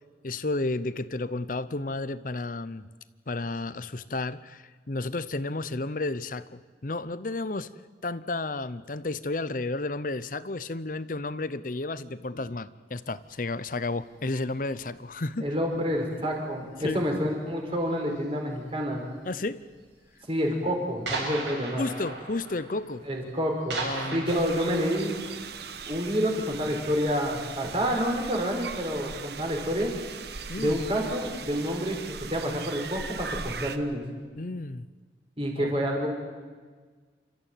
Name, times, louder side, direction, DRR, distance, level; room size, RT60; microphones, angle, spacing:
voice 1, 0.2-2.9 3.3-7.7 8.0-15.5 16.8-17.0 19.3-19.6 20.7-20.8 21.8-23.0 23.8-24.3 30.5-30.8 34.4-34.9 35.6-35.7, left 2 dB, 45° left, 15 dB, 0.7 m, -32 dB
sound 1, 13.4-13.6 14.4-14.8 15.1-15.5 15.9-16.1 16.6-16.7 16.9-17.0 17.8-18.3 19.1-19.2 19.6-19.7 20.0-20.1 20.4-20.5 21.1-25.8, right 3 dB, 80° right, 7.4 m, -37 dB
voice 2, 15.4-19.0 20.3-21.8 23.1-23.8 24.1-25.2 25.9-29.9 30.6-34.0 35.4-36.1, equal, 30° right, 1 dB, 4.7 m, -28 dB
sound 2, 24.3-33.8, right 5 dB, 60° right, 1.2 m, -39 dB
29.0 x 14.0 x 9.1 m, 1.5 s
head